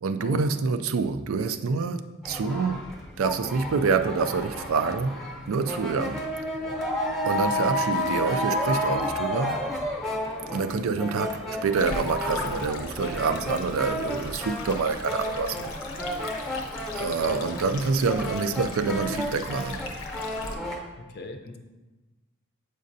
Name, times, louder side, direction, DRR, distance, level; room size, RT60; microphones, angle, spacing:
voice 1, 0.0-2.8 3.2-5.1 5.5-6.2 7.2-9.6 10.5-15.7 16.9-19.8, right 4 dB, 75° right, 10 dB, 0.4 m, -27 dB
sound 1, 2.2-20.8, left 1 dB, ahead, 0.8 m, -31 dB
Stream, 11.8-20.5, left 3 dB, 90° left, 0.8 m, -39 dB
voice 2, 21.0-21.6, left 3 dB, 50° left, 6 dB, 0.6 m, -39 dB
7.5 x 5.2 x 2.6 m, 1.1 s
head